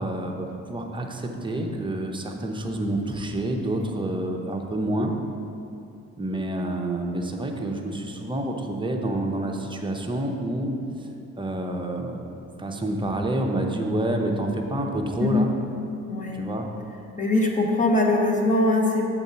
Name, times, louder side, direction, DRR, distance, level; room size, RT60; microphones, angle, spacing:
voice 1, 0.0-5.1 6.2-10.7 11.0-11.1 11.3-12.2 12.6-15.5 16.3-16.6, right 1 dB, 15° right, 2 dB, 0.7 m, -28 dB
voice 2, 15.2-15.5 16.1-16.4 17.2-19.0, left 2 dB, 25° left, 0 dB, 1.0 m, -22 dB
7.1 x 3.9 x 5.5 m, 2.7 s
cardioid pair, 90°, 30 cm